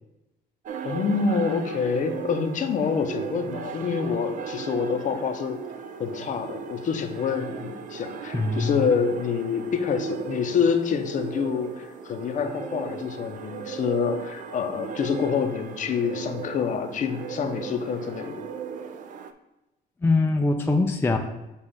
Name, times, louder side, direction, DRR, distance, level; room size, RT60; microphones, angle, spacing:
sound 1, 0.7-19.3, right 6 dB, 50° right, 0.5 m, -37 dB
voice 1, 0.8-5.6 6.0-18.4, left 6 dB, 50° left, 6 dB, 0.7 m, -27 dB
voice 2, 8.3-8.9 20.0-21.2, left 3 dB, 15° left, 4 dB, 0.4 m, -22 dB
7.0 x 2.4 x 5.5 m, 0.99 s
cardioid pair, 110°, 17 cm